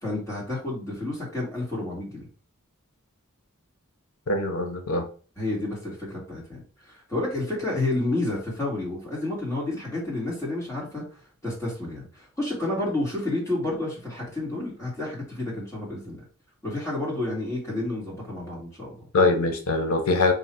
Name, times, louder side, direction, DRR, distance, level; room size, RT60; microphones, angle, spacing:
voice 1, 0.0-2.3 5.4-11.0 11.4-16.2 16.6-19.0, left 2 dB, 15° left, -5 dB, 2.1 m, -30 dB
voice 2, 4.3-5.1 19.1-20.3, left 3 dB, 90° left, 6 dB, 0.9 m, -23 dB
3.9 x 2.8 x 4.4 m, 0.38 s
head